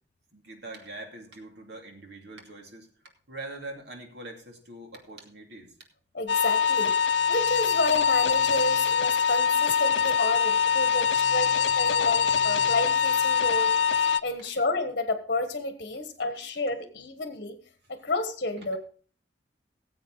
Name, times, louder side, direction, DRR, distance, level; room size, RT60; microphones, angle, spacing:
voice 1, 0.3-2.9 3.3-5.7 11.8-11.9 14.4-14.5, right 2 dB, 65° right, 2 dB, 2.7 m, -43 dB
voice 2, 6.1-6.9 7.3-17.6 17.9-18.8, left 2 dB, 50° left, 7 dB, 1.3 m, -30 dB
sound 1, 6.3-14.2, left 7 dB, 85° left, 0.6 m, -23 dB
18.5 x 7.8 x 4.0 m, 0.43 s
head